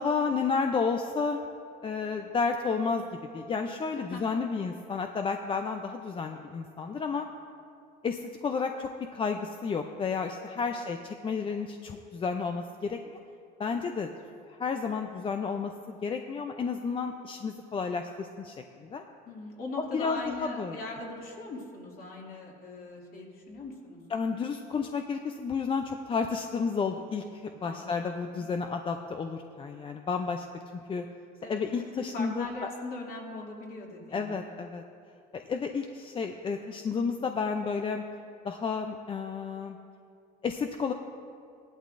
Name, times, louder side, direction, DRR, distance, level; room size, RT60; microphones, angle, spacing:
voice 1, 0.0-1.4 1.8-3.1 3.3-7.3 8.0-13.2 13.6-14.1 14.5-18.6 18.8-19.0 19.8-20.8 24.1-30.5 30.9-31.0 31.4-32.5 34.1-34.8 35.3-38.0 38.4-39.8 40.4-40.9, left 5 dB, 25° left, 5 dB, 0.5 m, -31 dB
voice 2, 4.0-4.7 10.8-10.9 19.3-24.0 27.6-28.4 31.4-34.3, left 2 dB, 50° left, -2 dB, 2.3 m, -40 dB
16.0 x 11.5 x 2.6 m, 2.4 s
cardioid pair, 110°, 20 cm